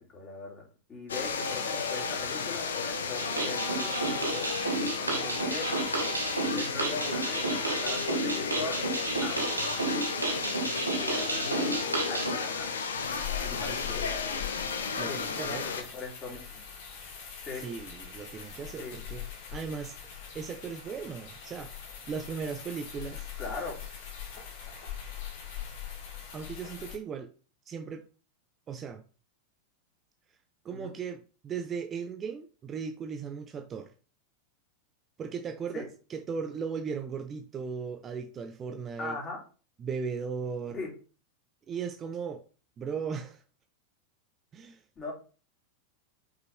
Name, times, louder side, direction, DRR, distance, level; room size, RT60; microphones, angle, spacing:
voice 1, 0.1-0.6 0.9-4.5 5.0-5.7 6.6-8.8 9.2-9.6 10.2-10.3 10.9-11.7 12.1-12.7 13.4-14.4 15.1-16.6 17.4-17.6 18.8-18.9 23.4-23.8 30.7-30.9 35.7-35.8 39.0-39.4 40.7-40.9 45.0-45.1, left 3 dB, 20° left, 2.9 m, -40 dB
sound 1, 1.1-15.8, left 5 dB, 65° left, 1.0 m, -33 dB
sound 2, 3.2-12.3, right 2 dB, 80° right, 1.5 m, -32 dB
sound 3, 13.0-27.0, left 9 dB, 50° left, 2.1 m, -42 dB
voice 2, 13.6-14.0 15.0-15.7 17.6-19.2 19.5-20.0 20.3-21.7 22.1-23.3 26.3-27.3 27.7-28.0 28.7-29.0 30.6-33.9 35.2-39.2 39.8-40.8 41.7-42.4 42.8-43.4 44.5-44.8, right 6 dB, 25° right, 0.6 m, -37 dB
5.7 x 5.6 x 3.5 m
figure-of-eight pair, 90°, 0 cm